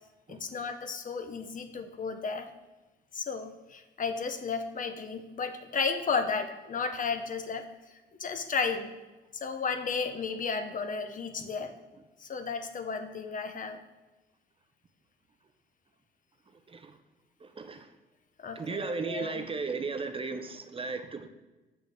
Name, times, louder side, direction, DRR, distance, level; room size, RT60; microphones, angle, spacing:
voice 1, 0.3-2.5 3.1-7.7 8.2-8.9 9.4-11.7 12.2-13.8 18.4-19.5, left 5 dB, 40° left, 8 dB, 0.7 m, -33 dB
voice 2, 17.4-17.9 18.6-21.3, right 4 dB, 30° right, 8 dB, 0.5 m, -35 dB
6.7 x 6.2 x 3.4 m, 1.1 s
cardioid pair, 90°, 20 cm